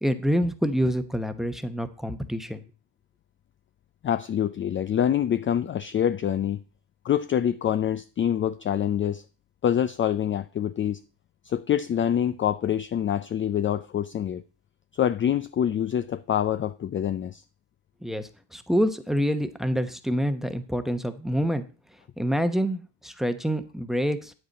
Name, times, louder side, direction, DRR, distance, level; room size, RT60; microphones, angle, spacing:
voice 1, 0.0-2.6 18.0-21.6 22.2-24.3, equal, ahead, 0.9 m, -27 dB
voice 2, 4.0-6.6 7.0-9.2 9.6-11.0 11.4-14.4 14.9-17.4, left 9 dB, 30° left, 0.4 m, -25 dB
8.7 x 7.9 x 4.1 m
cardioid pair, 90°, 44 cm